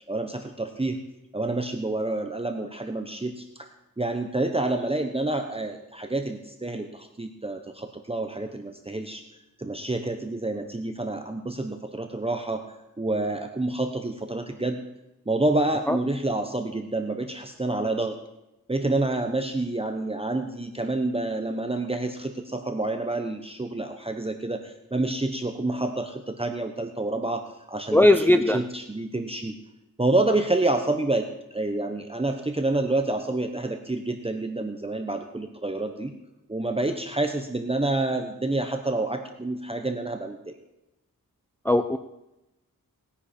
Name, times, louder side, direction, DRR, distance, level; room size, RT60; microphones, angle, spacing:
voice 1, 0.1-1.0 1.3-3.7 4.0-9.3 9.6-12.6 13.0-14.8 15.3-18.2 18.7-29.6 30.0-36.1 36.5-40.6, right 2 dB, 15° right, 5 dB, 0.9 m, -28 dB
voice 2, 27.9-28.6 41.7-42.0, left 1 dB, 5° left, 8 dB, 0.5 m, -18 dB
19.5 x 9.9 x 4.4 m, 0.92 s
wide cardioid pair, 85°, 34 cm